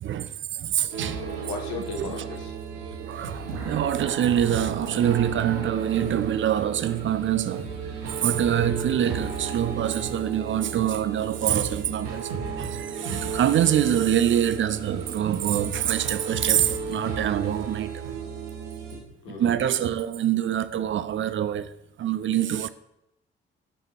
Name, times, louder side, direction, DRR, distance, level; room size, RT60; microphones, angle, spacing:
voice 1, 0.0-1.2 2.0-2.2 3.0-7.7 8.0-18.0 19.3-21.7 22.0-22.7, right 10 dB, 45° right, 0.4 m, -25 dB
sound 1, 0.9-19.0, right 5 dB, 85° right, 0.8 m, -34 dB
voice 2, 1.2-2.8 18.9-19.6, left 5 dB, 75° left, 1.0 m, -37 dB
5.7 x 5.3 x 3.7 m
hypercardioid pair, 45°, 29 cm